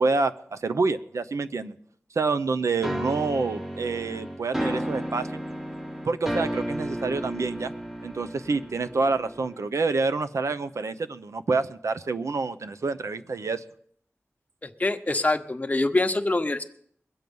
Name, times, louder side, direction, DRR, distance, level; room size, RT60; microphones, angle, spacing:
voice 1, 0.0-1.7 2.2-5.4 6.0-7.7 8.0-13.6, right 3 dB, 90° right, 11 dB, 0.7 m, -27 dB
sound 1, 2.8-9.7, equal, 10° right, 1.1 m, -33 dB
voice 2, 14.8-16.6, left 2 dB, 30° left, 7 dB, 1.0 m, -24 dB
22.0 x 7.8 x 5.4 m, 0.63 s
wide cardioid pair, 80°, 5 cm